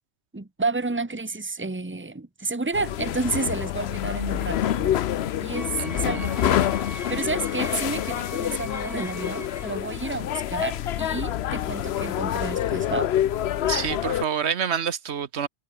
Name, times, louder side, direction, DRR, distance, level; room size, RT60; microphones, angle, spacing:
voice 1, 0.3-5.0 5.4-6.7 6.9-13.1, right 3 dB, 10° right, 1.2 m, -30 dB
sound 1, 2.7-14.2, left 11 dB, 70° left, 0.9 m, -27 dB
Wind instrument woodwind instrument, 5.5-9.8, left 2 dB, 50° left, 4.2 m, -41 dB
voice 2, 5.8-6.3 13.7-15.5, right 7 dB, 75° right, 1.2 m, -28 dB
omnidirectional pair, 1.1 m